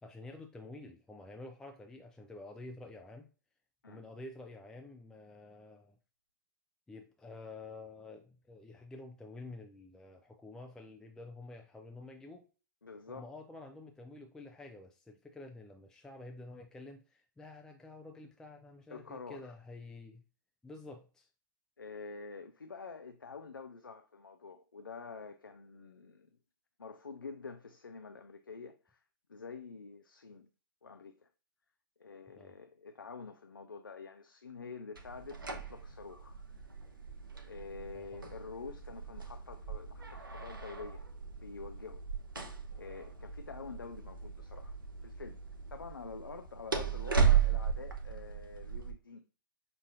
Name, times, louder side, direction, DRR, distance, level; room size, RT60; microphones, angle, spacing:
voice 1, 0.0-3.3 3.9-6.0 6.9-12.4 13.1-20.2 20.6-21.3 32.3-32.5 37.9-38.2, left 2 dB, 5° left, 0.4 m, -49 dB
voice 2, 12.8-13.3 18.9-19.5 21.8-26.3 26.8-29.0 29.3-30.5 30.8-31.3 32.0-36.4 37.4-41.1 41.4-42.1 42.4-44.8 45.0-45.4 45.7-49.3, left 4 dB, 90° left, 0.4 m, -47 dB
sound 1, 34.9-48.9, right 7 dB, 85° right, 0.7 m, -36 dB
5.6 x 2.6 x 2.4 m
figure-of-eight pair, 110°, 11 cm